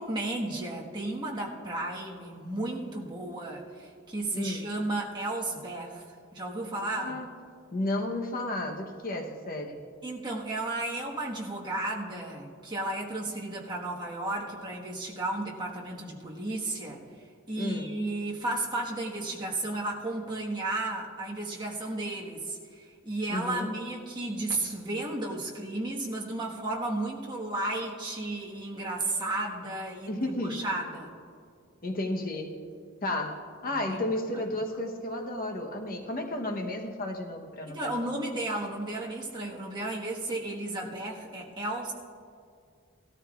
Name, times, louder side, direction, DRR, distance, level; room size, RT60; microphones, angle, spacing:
voice 1, 0.0-6.0 6.3-7.2 10.0-17.0 17.5-31.1 33.9-34.0 34.3-34.4 37.7-41.9, right 2 dB, 20° right, -3 dB, 1.5 m, -33 dB
voice 2, 4.3-4.7 6.9-7.3 7.7-9.8 17.6-18.0 23.3-23.7 30.1-30.6 31.8-32.6 33.0-38.1, left 1 dB, 45° left, 3 dB, 1.0 m, -33 dB
17.5 x 13.5 x 2.5 m, 2.3 s
head